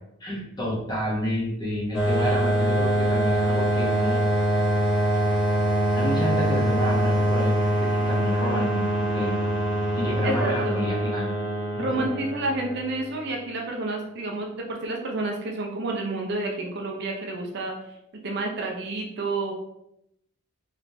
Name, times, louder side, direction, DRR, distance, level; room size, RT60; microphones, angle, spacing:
voice 1, 0.2-4.2 5.9-8.8 9.1-9.4 10.0-11.3 11.7-12.0, equal, 20° left, -5 dB, 1.0 m, -30 dB
sound 1, 1.9-13.3, right 1 dB, 60° left, 0.7 m, -24 dB
voice 2, 10.2-10.9 11.8-17.7 18.2-19.5, right 2 dB, 55° right, 1 dB, 0.6 m, -29 dB
3.2 x 3.0 x 2.7 m, 0.80 s
head